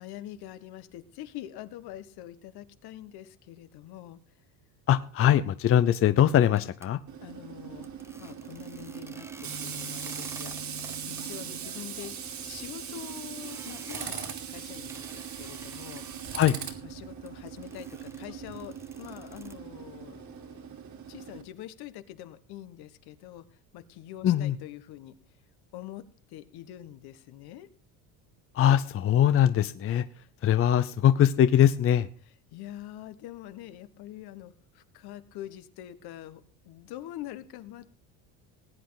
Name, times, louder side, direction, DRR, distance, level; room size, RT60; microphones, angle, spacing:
voice 1, 0.0-4.2 7.2-7.9 8.2-10.7 11.1-16.1 16.8-20.6 20.9-23.4 23.7-25.1 25.7-27.7 32.5-37.9, left 13 dB, 65° left, 11 dB, 1.4 m, -44 dB
voice 2, 4.9-7.0 16.3-16.5 24.2-24.6 28.5-30.0 30.4-32.1, left 10 dB, 35° left, 12 dB, 0.6 m, -22 dB
sound 1, 6.5-6.9 7.8-11.2 11.5-11.6 11.9-12.0 12.6-16.6 17.3-19.6, right 2 dB, 5° right, 0.8 m, -50 dB
Tools, 7.1-21.4, right 7 dB, 45° right, 2.3 m, -40 dB
19.5 x 8.7 x 4.0 m, 0.44 s
cardioid pair, 130°, 41 cm